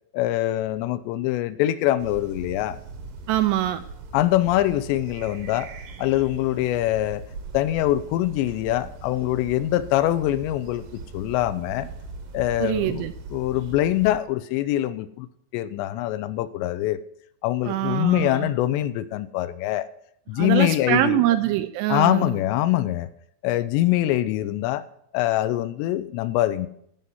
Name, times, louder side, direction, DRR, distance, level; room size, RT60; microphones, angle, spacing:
voice 1, 0.1-2.8 4.1-5.7 6.0-7.3 7.5-11.9 12.3-15.3 15.5-17.0 17.4-19.9 20.3-21.2 21.9-23.1 23.4-24.8 25.1-26.7, left 14 dB, 85° left, 14 dB, 2.8 m, -24 dB
sound 1, 2.0-14.2, right 4 dB, 65° right, 2.2 m, -40 dB
voice 2, 3.3-3.8 12.6-13.1 17.7-18.5 20.3-22.4, right 14 dB, 80° right, 10 dB, 2.5 m, -24 dB
15.0 x 5.6 x 7.7 m, 0.70 s
omnidirectional pair, 5.2 m